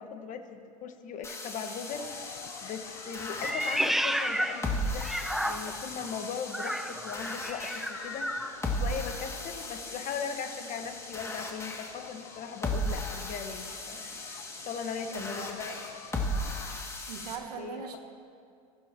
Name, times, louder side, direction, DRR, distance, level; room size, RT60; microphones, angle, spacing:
voice 1, 0.0-2.1 2.6-5.1 5.4-8.3 8.7-14.2 14.6-15.8 17.6-18.0, left 6 dB, 40° left, 6 dB, 1.5 m, -39 dB
sound 1, 1.2-17.4, left 1 dB, 15° left, 2.4 m, -37 dB
sound 2, 1.9-16.8, left 10 dB, 65° left, 0.9 m, -49 dB
Meow, 3.4-5.9 6.5-8.6, equal, ahead, 0.7 m, -32 dB
voice 2, 17.1-18.0, right 6 dB, 80° right, 3 dB, 2.1 m, -40 dB
26.0 x 15.5 x 3.0 m, 2.3 s
hypercardioid pair, 95°, 20 cm